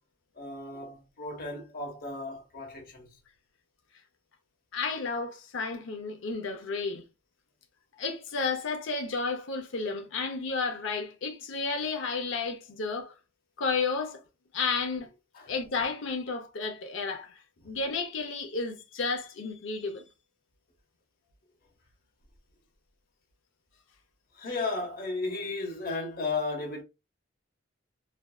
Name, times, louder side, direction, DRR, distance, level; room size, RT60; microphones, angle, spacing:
voice 1, 0.4-3.1 15.3-15.5 24.3-26.8, left 3 dB, 50° left, 0.8 m, -34 dB
voice 2, 4.7-7.0 8.0-13.1 13.6-14.2 14.5-15.1 15.5-17.4 17.6-20.0, left 4 dB, 80° left, 0.6 m, -32 dB
2.6 x 2.2 x 2.3 m
head